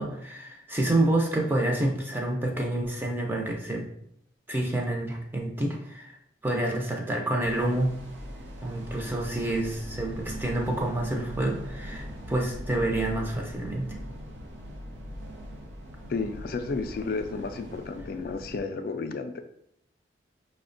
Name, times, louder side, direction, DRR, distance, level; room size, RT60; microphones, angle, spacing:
voice 1, 0.0-3.9 4.5-6.1 6.4-7.9 8.6-14.0, right 1 dB, 10° right, 0 dB, 0.5 m, -28 dB
sound 1, 7.4-18.6, equal, 85° right, 0.6 m, -41 dB
voice 2, 16.1-19.4, left 4 dB, 50° left, 7 dB, 0.3 m, -32 dB
5.5 x 2.1 x 2.5 m, 0.72 s
head